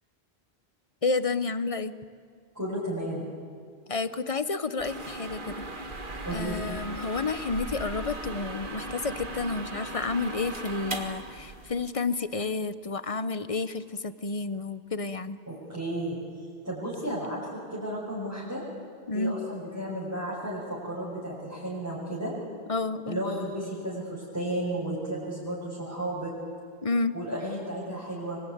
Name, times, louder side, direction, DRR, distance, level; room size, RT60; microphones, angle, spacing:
voice 1, 1.0-1.9 3.9-5.5 6.3-15.4 19.1-19.3 22.7-23.2 26.8-27.1, left 3 dB, 35° left, 13 dB, 0.9 m, -30 dB
voice 2, 2.5-3.2 6.2-6.6 15.5-16.2 16.6-18.6 19.1-22.3 23.0-26.3 27.1-28.4, right 1 dB, 15° right, -7 dB, 6.5 m, -33 dB
sound 1, 4.8-11.9, right 2 dB, 50° right, 2.0 m, -37 dB
24.5 x 24.5 x 9.4 m, 2.1 s
omnidirectional pair, 1.1 m